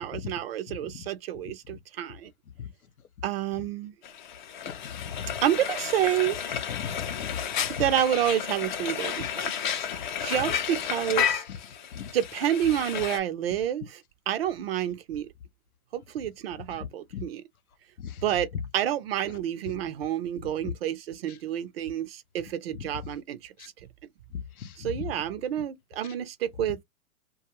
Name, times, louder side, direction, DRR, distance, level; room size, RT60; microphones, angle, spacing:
voice 1, 0.0-2.3 3.2-3.9 5.4-6.7 7.7-9.7 10.2-11.4 12.1-15.3 15.9-17.4 18.2-23.7 24.8-26.8, right 11 dB, 45° right, 0.4 m, -29 dB
Frying (food), 4.0-13.2, left 8 dB, 35° left, 0.4 m, -32 dB
voice 2, 4.6-5.3 6.7-7.7 9.2-9.3 11.9-12.1 17.1-17.2 18.0-18.2 22.8-22.9 23.6-23.7 24.3-25.0, left 8 dB, 90° left, 0.7 m, -37 dB
2.3 x 2.3 x 2.8 m
hypercardioid pair, 125°, 42 cm